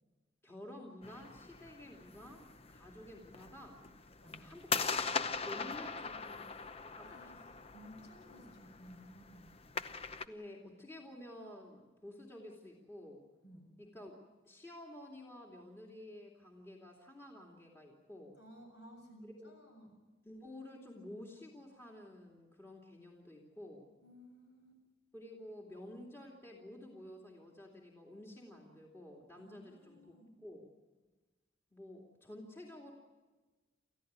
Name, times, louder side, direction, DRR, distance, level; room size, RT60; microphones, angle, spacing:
voice 1, 0.4-3.8 4.3-7.2 10.1-13.2 13.8-14.2 14.4-18.4 19.2-19.5 20.3-23.9 25.1-30.1 30.4-30.7 31.7-32.9, left 1 dB, 15° left, -2 dB, 2.7 m, -51 dB
sound 1, 1.0-10.2, left 5 dB, 30° left, 0.8 m, -41 dB
voice 2, 4.2-4.5 7.0-9.5 13.4-13.7 18.3-19.9 24.0-24.8 29.3-30.3, equal, 65° left, 2 dB, 7.6 m, -56 dB
28.5 x 15.0 x 9.5 m, 1.3 s
head